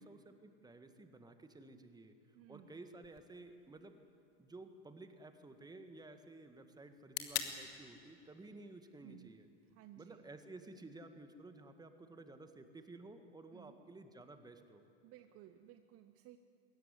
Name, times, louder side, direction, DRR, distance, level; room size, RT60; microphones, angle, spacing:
voice 1, 0.0-2.2 2.5-4.0 4.4-9.5 10.0-14.8, right 2 dB, 10° right, 8 dB, 1.8 m, -54 dB
voice 2, 2.3-2.8 9.0-9.3 9.7-10.2 13.5-13.8 15.0-16.4, right 13 dB, 40° right, 10 dB, 0.9 m, -58 dB
sound 1, 3.0-11.0, left 11 dB, 50° left, 2.2 m, -50 dB
22.0 x 17.0 x 9.7 m, 2.6 s
hypercardioid pair, 90°, 35 cm